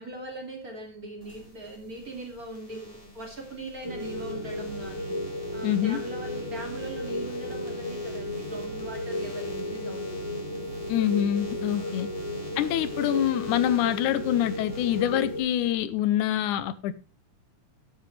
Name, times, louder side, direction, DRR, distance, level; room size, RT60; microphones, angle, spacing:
voice 1, 0.0-10.5 11.8-12.1, right 1 dB, 30° right, 2.6 m, -40 dB
sound 1, 1.2-15.7, left 1 dB, 10° left, 3.6 m, -49 dB
sound 2, 3.8-15.4, left 1 dB, 55° right, 5.6 m, -34 dB
voice 2, 5.6-6.0 10.9-12.1 12.6-16.9, left 11 dB, 85° left, 2.2 m, -25 dB
14.0 x 7.7 x 3.3 m
omnidirectional pair, 3.5 m